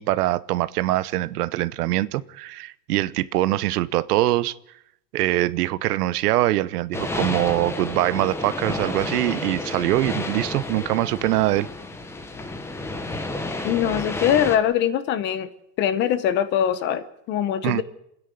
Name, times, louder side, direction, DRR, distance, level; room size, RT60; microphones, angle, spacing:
voice 1, 0.0-4.5 5.1-11.7 17.6-17.8, right 16 dB, 70° right, 18 dB, 0.9 m, -23 dB
sound 1, 6.9-14.6, left 2 dB, 5° left, 1.0 m, -31 dB
voice 2, 13.6-15.5 15.8-17.8, left 10 dB, 25° left, 14 dB, 0.7 m, -22 dB
28.5 x 10.0 x 9.1 m, 0.78 s
supercardioid pair, 170°, 49 cm